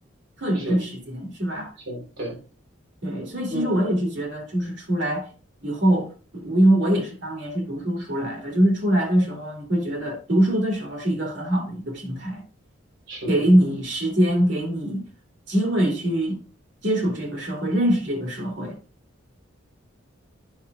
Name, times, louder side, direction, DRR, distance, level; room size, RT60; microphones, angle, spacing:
voice 1, 0.4-1.7 3.0-5.3 5.6-12.4 13.3-15.1 15.5-16.4 16.8-18.8, right 1 dB, 60° right, 2.4 m, -23 dB
voice 2, 1.9-2.4 3.5-3.7 13.1-13.5, equal, 90° right, 3.7 m, -32 dB
11.0 x 5.8 x 2.4 m
head